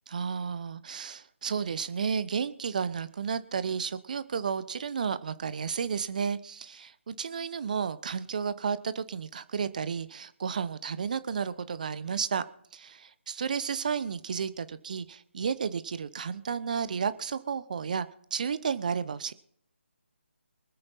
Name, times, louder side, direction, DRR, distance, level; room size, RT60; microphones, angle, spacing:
voice 1, 0.1-12.4 12.7-19.3, right 6 dB, 40° right, 15 dB, 0.9 m, -32 dB
24.5 x 8.9 x 4.1 m, 0.67 s
figure-of-eight pair, 150°, 7 cm